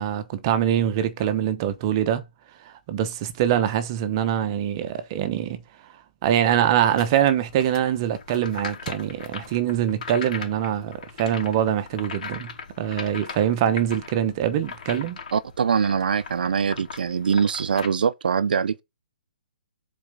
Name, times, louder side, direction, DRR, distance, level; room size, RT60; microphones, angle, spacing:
voice 1, 0.0-2.2 2.6-5.6 6.2-12.5 12.8-15.2, right 10 dB, 25° right, 1.0 m, -24 dB
sound 1, 6.9-17.9, left 6 dB, 50° left, 3.1 m, -40 dB
voice 2, 15.3-18.8, right 6 dB, 70° right, 0.6 m, -23 dB
7.1 x 4.2 x 6.6 m
hypercardioid pair, 165°, 5 cm